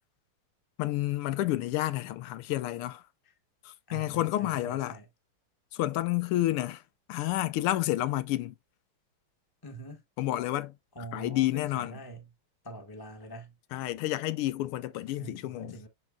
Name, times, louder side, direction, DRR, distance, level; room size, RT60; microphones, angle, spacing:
voice 1, 0.8-3.0 3.6-5.0 5.7-6.8 7.1-8.5 10.2-10.8 11.1-11.9 13.7-15.8, left 15 dB, 90° left, 1.6 m, -30 dB
voice 2, 3.9-5.1 9.6-10.0 10.9-12.3 12.6-13.5 15.2-15.9, right 2 dB, 15° left, 1.0 m, -45 dB
11.0 x 3.8 x 2.3 m
omnidirectional pair, 2.4 m